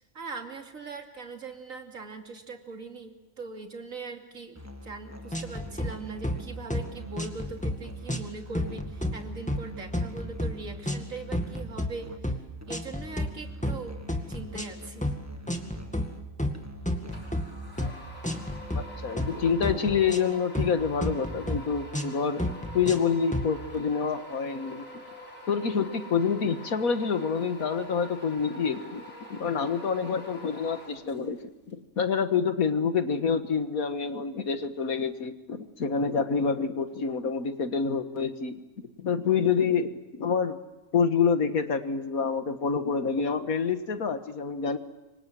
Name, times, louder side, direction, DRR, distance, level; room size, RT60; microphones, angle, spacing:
voice 1, 0.1-12.1 12.7-14.0 14.3-15.1, right 4 dB, 70° right, 4 dB, 3.0 m, -41 dB
Musical instrument, 4.5-19.9, left 2 dB, 10° right, 1.5 m, -45 dB
sound 1, 5.3-5.9 6.2-6.4 6.7-6.9 7.2-7.8 8.1-8.3 8.5-9.2 9.5-9.7 9.9-10.5 10.9-11.0 11.3-11.9 12.2-12.4 12.7-13.3 13.6-13.8 14.1-14.7 15.0-15.2 15.5-16.1 16.4-17.5 17.8-17.9 18.2-18.8 19.2-19.3 19.6-20.8 21.0-21.6 21.9-22.1 22.4-23.0 23.3-23.5, left 1 dB, 5° left, 2.0 m, -31 dB
sound 2, 17.1-31.4, equal, 70° left, 6.6 m, -45 dB
voice 2, 18.8-24.8 25.5-29.0 29.3-31.4 31.7-38.6 39.0-40.6 40.9-44.8, left 6 dB, 85° left, 9 dB, 2.0 m, -27 dB
27.5 x 24.5 x 7.7 m, 1.1 s
omnidirectional pair, 1.4 m